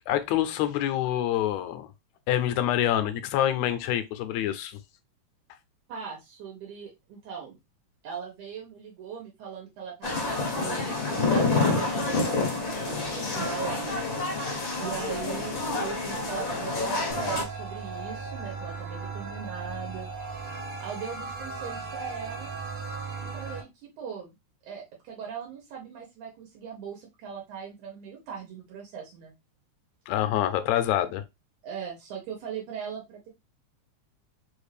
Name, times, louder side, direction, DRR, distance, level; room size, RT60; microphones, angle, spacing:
voice 1, 0.1-1.9 2.3-4.8 30.1-31.2, left 12 dB, 80° left, 1.7 m, -26 dB
voice 2, 5.9-7.6 8.0-13.8 14.8-20.1 20.8-22.6 23.2-24.3 24.6-29.3 31.6-33.3, right 7 dB, 80° right, 2.4 m, -39 dB
sound 1, 10.0-17.4, left 3 dB, 60° left, 0.8 m, -28 dB
sound 2, 17.1-23.6, right 4 dB, 65° right, 1.0 m, -37 dB
4.9 x 2.5 x 3.2 m
omnidirectional pair, 3.5 m